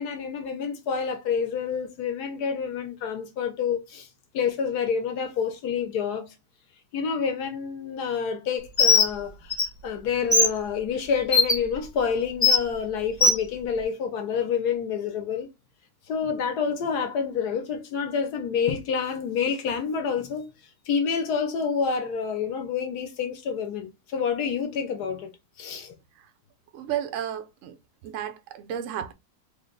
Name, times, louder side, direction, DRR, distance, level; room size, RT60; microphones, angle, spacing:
voice 1, 0.0-4.1 4.3-6.3 6.9-9.5 9.8-15.5 16.1-20.5 20.9-25.3 25.6-25.9, left 6 dB, 70° left, 1.2 m, -28 dB
Bird, 8.8-9.1 9.5-9.6 10.3-10.5 11.3-11.5 12.4-12.6 13.2-13.4, left 3 dB, 15° left, 0.9 m, -18 dB
voice 2, 26.7-27.7 28.0-29.1, right 10 dB, 80° right, 0.7 m, -32 dB
3.6 x 2.2 x 3.7 m
omnidirectional pair, 1.9 m